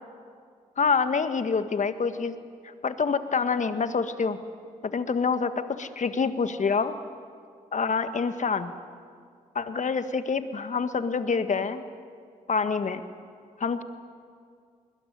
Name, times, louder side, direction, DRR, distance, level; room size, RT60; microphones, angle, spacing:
voice 1, 0.8-2.3 2.8-4.4 4.8-6.9 7.7-8.7 9.6-11.8 12.5-13.0 13.6-13.8, left 5 dB, 45° left, 10 dB, 1.7 m, -26 dB
21.0 x 20.5 x 9.5 m, 2.2 s
hypercardioid pair, 45°, 17 cm